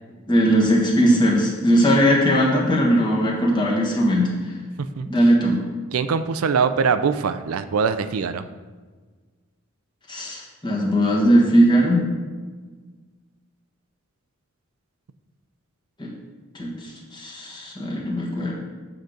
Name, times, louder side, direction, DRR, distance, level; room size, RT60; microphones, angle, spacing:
voice 1, 0.3-4.3 5.1-5.6 10.1-12.1 16.0-16.1 16.5-18.5, equal, 20° left, -3 dB, 1.5 m, -19 dB
voice 2, 5.9-8.5, right 6 dB, 85° right, 10 dB, 0.4 m, -22 dB
7.7 x 3.9 x 6.5 m, 1.4 s
head